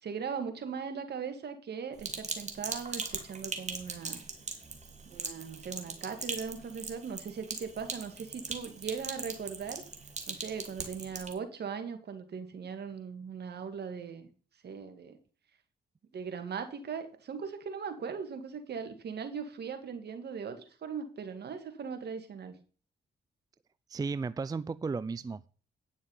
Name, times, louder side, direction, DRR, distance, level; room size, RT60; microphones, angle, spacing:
voice 1, 0.0-4.2 5.0-9.8 10.3-14.3 14.6-15.2 16.1-22.5, right 6 dB, 60° right, 2.1 m, -39 dB
Sink (filling or washing), 2.0-11.3, right 4 dB, 40° right, 2.3 m, -40 dB
voice 2, 23.9-25.5, right 4 dB, 20° right, 0.4 m, -34 dB
10.0 x 6.3 x 5.5 m
supercardioid pair, 65°, 19 cm